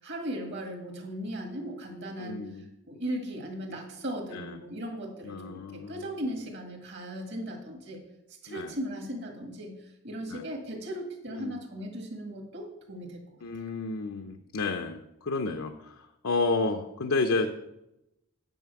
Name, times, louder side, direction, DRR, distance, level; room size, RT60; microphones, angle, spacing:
voice 1, 0.0-2.5 2.9-8.0 8.4-9.8 10.0-13.2, equal, 55° right, 2 dB, 2.0 m, -37 dB
voice 2, 2.2-2.7 4.3-4.6 5.2-6.2 8.5-8.8 10.2-10.5 11.3-11.6 13.4-17.5, left 3 dB, 75° left, 6 dB, 0.7 m, -31 dB
9.3 x 5.5 x 7.0 m, 0.88 s
head